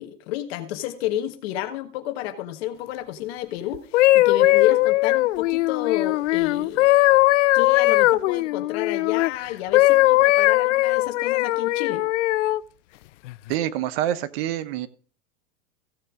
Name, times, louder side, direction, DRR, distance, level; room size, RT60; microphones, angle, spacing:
voice 1, 0.0-6.9 7.5-12.1, left 11 dB, 55° left, 7 dB, 1.5 m, -30 dB
sound 1, 3.7-9.3 9.7-12.6 13.3-13.5, left 18 dB, 70° left, 0.5 m, -19 dB
voice 2, 13.5-14.9, right 12 dB, 55° right, 14 dB, 1.1 m, -26 dB
16.0 x 6.7 x 3.7 m, 0.42 s
hypercardioid pair, 130°, 37 cm